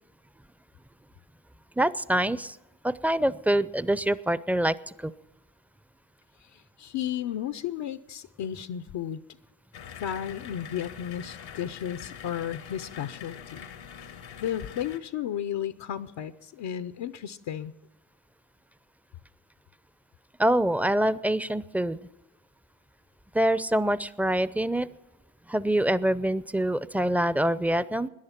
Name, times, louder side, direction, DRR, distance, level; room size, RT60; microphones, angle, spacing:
voice 1, 1.8-2.6 2.8-5.1 20.4-22.0 23.3-24.9 25.5-28.1, right 1 dB, 5° right, 17 dB, 0.5 m, -25 dB
voice 2, 6.8-9.2 10.0-13.7 14.4-17.7, left 10 dB, 70° left, 11 dB, 0.7 m, -33 dB
sound 1, 9.7-15.0, left 8 dB, 90° left, 1.4 m, -44 dB
18.0 x 10.5 x 5.8 m, 1.0 s
supercardioid pair, 55°, 45 cm